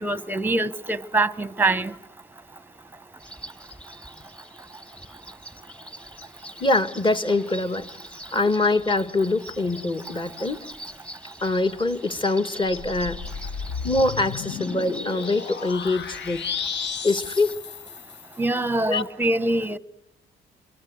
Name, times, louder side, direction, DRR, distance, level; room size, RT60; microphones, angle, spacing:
voice 1, 0.0-1.9 18.4-19.8, right 2 dB, 10° right, 1.0 m, -24 dB
sound 1, 3.2-17.5, equal, 5° left, 1.4 m, -43 dB
voice 2, 6.6-7.9 8.3-10.7 11.4-13.2 13.8-16.4 17.0-17.6 18.9-19.1, left 2 dB, 25° left, 1.6 m, -24 dB
sound 2, 12.7-18.5, left 7 dB, 65° left, 1.0 m, -34 dB
28.5 x 24.0 x 7.8 m
cardioid pair, 90°, 20 cm